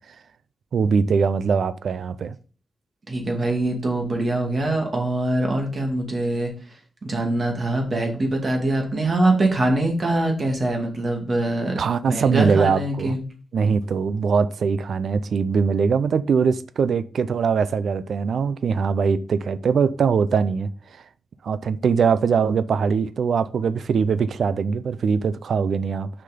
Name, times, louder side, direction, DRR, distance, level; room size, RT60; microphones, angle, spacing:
voice 1, 0.7-2.4 11.8-13.1 13.5-21.0 21.4-26.1, right 5 dB, 70° right, 0.5 m, -22 dB
voice 2, 3.1-6.5 7.0-11.8 12.1-13.2, right 2 dB, 40° right, 2.3 m, -23 dB
6.5 x 5.9 x 5.1 m
wide cardioid pair, 150°, 0 cm